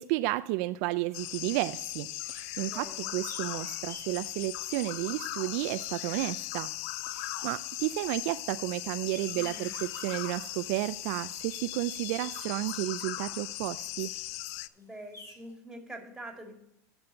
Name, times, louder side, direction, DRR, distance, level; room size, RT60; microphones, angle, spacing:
voice 1, 0.0-6.7 7.1-14.1, right 18 dB, 60° right, 12 dB, 0.4 m, -32 dB
sound 1, 1.0-15.5, left 2 dB, 30° left, 2.5 m, -57 dB
sound 2, 1.1-14.7, left 16 dB, 60° left, 0.4 m, -38 dB
voice 2, 2.6-3.1 9.3-9.8 14.7-16.5, right 1 dB, 5° right, 2 dB, 2.7 m, -45 dB
9.0 x 6.9 x 5.6 m, 0.81 s
hypercardioid pair, 100°, 9 cm